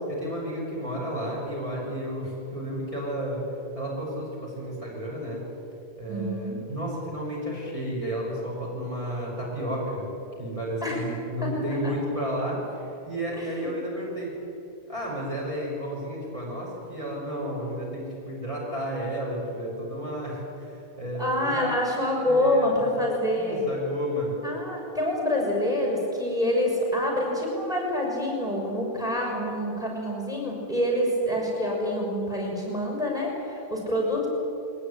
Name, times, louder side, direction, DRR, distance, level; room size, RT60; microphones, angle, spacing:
voice 1, 0.1-3.4 3.7-5.4 6.0-10.0 10.4-14.3 14.9-21.7 22.2-22.7 23.3-24.4, equal, 30° right, -5 dB, 6.2 m, -32 dB
voice 2, 6.1-6.6 10.8-11.0 11.4-11.9 13.3-13.7 21.2-23.6 24.4-34.3, left 1 dB, 5° right, -1 dB, 6.4 m, -27 dB
22.0 x 20.0 x 9.9 m, 2.9 s
omnidirectional pair, 1.1 m